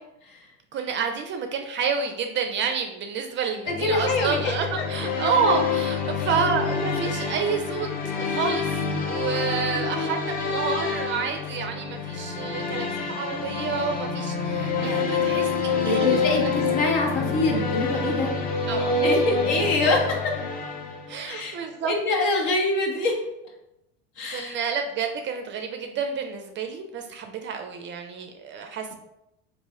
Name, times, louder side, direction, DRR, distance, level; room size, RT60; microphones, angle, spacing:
voice 1, 0.7-16.2 16.4-16.5 18.7-19.0 19.3-19.4 21.1-21.9 24.3-28.9, right 6 dB, 35° right, 5 dB, 0.4 m, -29 dB
voice 2, 3.7-4.5 9.7-10.3 15.8-18.3 19.0-20.3 21.3-21.6 21.8-23.1 24.2-24.5, left 2 dB, 60° left, 1 dB, 1.0 m, -25 dB
sound 1, 3.7-21.4, left 4 dB, 25° left, 0.5 m, -27 dB
3.4 x 2.6 x 3.2 m, 0.87 s
hypercardioid pair, 100°, 35 cm